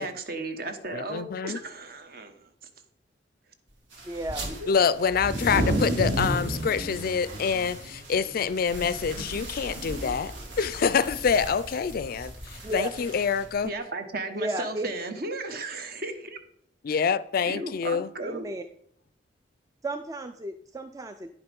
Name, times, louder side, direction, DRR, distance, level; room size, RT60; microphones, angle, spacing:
voice 1, 0.0-2.5 4.5-4.7 9.9-10.0 13.6-16.4 17.5-18.4, right 2 dB, 55° right, 1.1 m, -35 dB
voice 2, 0.9-1.6 4.7-13.7 16.8-18.1, left 6 dB, 50° left, 0.4 m, -26 dB
sound 1, 3.9-13.5, right 3 dB, 85° right, 2.6 m, -47 dB
voice 3, 4.0-4.5 12.6-12.9 14.3-14.9 18.2-18.6 19.8-21.3, right 1 dB, 20° right, 0.4 m, -33 dB
sound 2, 4.2-4.5 5.1-13.6, right 1 dB, 70° right, 2.2 m, -33 dB
10.0 x 5.6 x 5.3 m
head